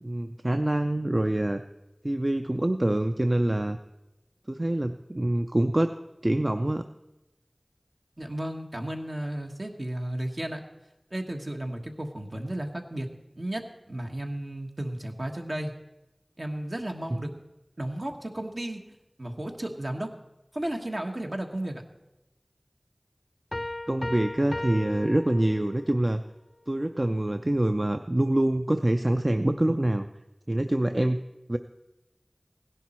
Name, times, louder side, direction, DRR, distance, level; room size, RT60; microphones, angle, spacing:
voice 1, 0.0-1.6 2.0-3.8 4.5-6.0 6.2-6.8 17.1-17.2 23.9-26.2 26.7-30.1 30.5-31.2 31.5-31.6, right 1 dB, 40° right, 7 dB, 0.4 m, -25 dB
voice 2, 8.2-10.6 11.1-13.1 13.4-15.7 16.4-17.3 17.8-18.8 19.2-20.1 20.5-21.8, right 1 dB, 60° right, 2 dB, 1.4 m, -33 dB
sound 1, 23.5-26.0, left 2 dB, 55° left, 0.4 m, -36 dB
16.5 x 10.5 x 4.4 m, 0.97 s
wide cardioid pair, 40°, 0 cm